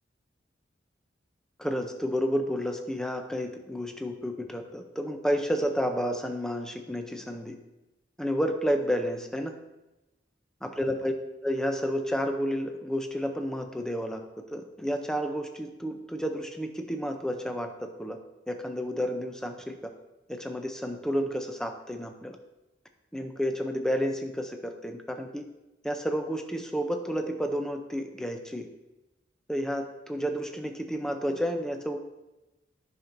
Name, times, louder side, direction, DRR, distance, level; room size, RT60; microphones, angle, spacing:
voice 1, 1.6-7.5 8.2-9.5 10.6-11.1 11.4-14.2 14.5-18.2 18.5-19.8 20.3-22.4 23.1-25.4 25.8-28.7 29.5-32.0, equal, 5° left, 5 dB, 0.5 m, -31 dB
9.6 x 5.8 x 2.6 m, 1.0 s
head